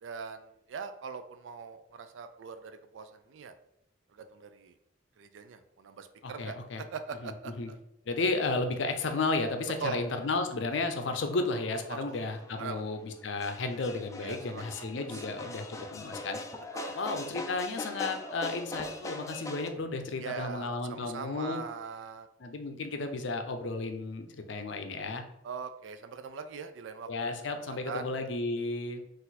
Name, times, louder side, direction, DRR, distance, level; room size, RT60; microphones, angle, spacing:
voice 1, 0.0-3.5 4.1-4.8 5.2-7.8 9.8-10.0 11.9-12.0 12.6-12.9 14.2-14.9 15.1-15.2 16.7-16.9 20.2-22.3 25.4-27.3 27.7-28.2, right 5 dB, 80° right, 10 dB, 0.4 m, -41 dB
voice 2, 6.2-6.8 7.2-7.7 8.1-16.4 16.9-21.6 22.4-25.2 27.1-29.0, left 3 dB, 70° left, 6 dB, 0.5 m, -33 dB
sound 1, 9.1-19.7, left 2 dB, 15° left, 0.3 m, -43 dB
4.1 x 2.5 x 4.1 m, 0.80 s
head